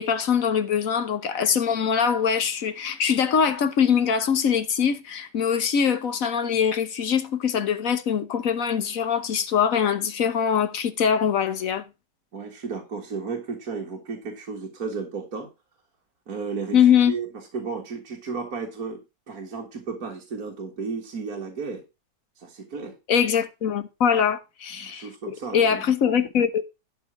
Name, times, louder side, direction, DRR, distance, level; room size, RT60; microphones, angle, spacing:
voice 1, 0.0-11.8 16.7-17.1 23.1-25.1 25.5-26.6, left 7 dB, 55° left, 1.4 m, -22 dB
voice 2, 12.3-15.5 16.3-16.8 17.1-17.3 17.5-21.8 22.4-23.0 24.1-24.3 24.8-25.8, right 5 dB, 55° right, 2.2 m, -33 dB
12.0 x 4.4 x 6.0 m
omnidirectional pair, 1.9 m